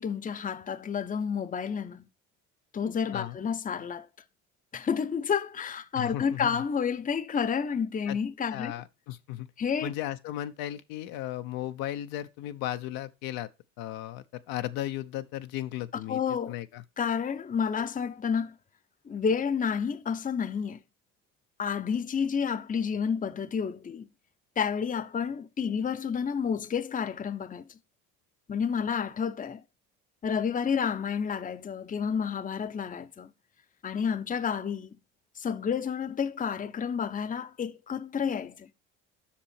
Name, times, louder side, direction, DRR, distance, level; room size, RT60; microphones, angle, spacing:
voice 1, 0.0-2.1 2.7-4.1 4.7-8.7 9.6-9.9 16.1-16.5 17.0-18.5 19.1-20.8 21.6-24.1 24.6-27.7 28.5-29.6 30.2-33.3 33.8-35.0 35.4-38.7, left 6 dB, 20° left, 0.8 m, -30 dB
voice 2, 5.9-6.6 8.0-8.2 8.5-9.5 9.8-13.5 13.8-16.8, left 13 dB, 65° left, 0.9 m, -36 dB
7.5 x 6.2 x 4.3 m
hypercardioid pair, 65°, 37 cm